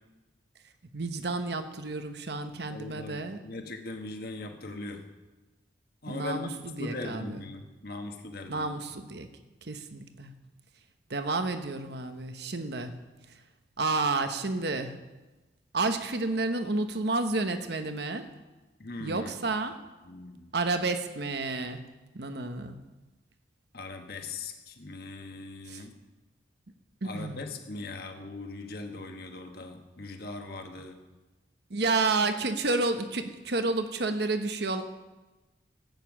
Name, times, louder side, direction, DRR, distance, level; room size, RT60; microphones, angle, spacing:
voice 1, 0.9-3.4 6.1-7.5 8.5-9.3 9.7-10.3 11.1-12.9 13.8-14.9 15.7-18.2 19.0-19.7 20.5-21.8 22.1-22.8 25.7-25.8 27.0-27.4 31.7-34.8, right 3 dB, 60° right, 8 dB, 1.0 m, -30 dB
voice 2, 2.6-5.0 6.0-8.7 18.8-19.3 20.0-20.5 23.7-25.9 27.0-31.0, left 2 dB, 55° left, 4 dB, 1.4 m, -40 dB
14.5 x 9.2 x 6.2 m, 1.2 s
head